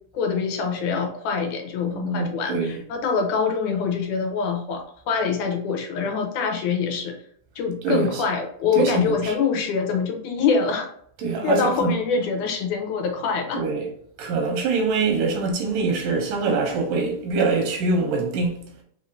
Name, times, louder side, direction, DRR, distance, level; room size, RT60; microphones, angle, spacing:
voice 1, 0.1-7.2 7.6-10.9 11.4-13.6, left 5 dB, 90° left, 2.3 m, -24 dB
voice 2, 1.9-2.8 7.8-8.2 8.7-9.3 11.2-12.0 13.5-13.9 14.2-18.6, right 4 dB, 85° right, 2.5 m, -24 dB
6.1 x 3.1 x 2.5 m
omnidirectional pair, 3.5 m